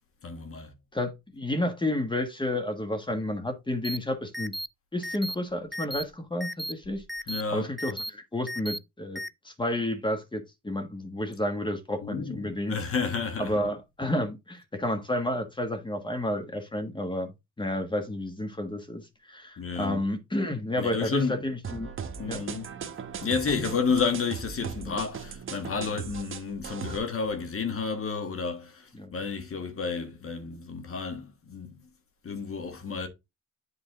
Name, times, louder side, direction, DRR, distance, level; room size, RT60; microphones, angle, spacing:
voice 1, 0.2-0.7 7.3-7.7 12.0-13.7 19.6-20.0 20.8-21.5 22.2-22.7 23.2-31.9 32.2-33.1, left 5 dB, 45° left, 1.6 m, -31 dB
voice 2, 0.9-4.5 4.9-7.0 7.5-12.8 13.4-17.3 17.6-21.9 22.3-22.4 24.9-25.0 29.0-29.1, left 1 dB, 15° left, 1.5 m, -31 dB
sound 1, 3.8-4.0 4.3-4.7 5.0-5.4 5.7-6.0 6.4-6.7 7.1-7.4 7.8-8.1 8.5-8.8 9.2-9.3, equal, ahead, 0.4 m, -34 dB
sound 2, 21.6-27.0, right 6 dB, 45° right, 1.1 m, -38 dB
8.1 x 3.9 x 3.7 m
cardioid pair, 90°, 30 cm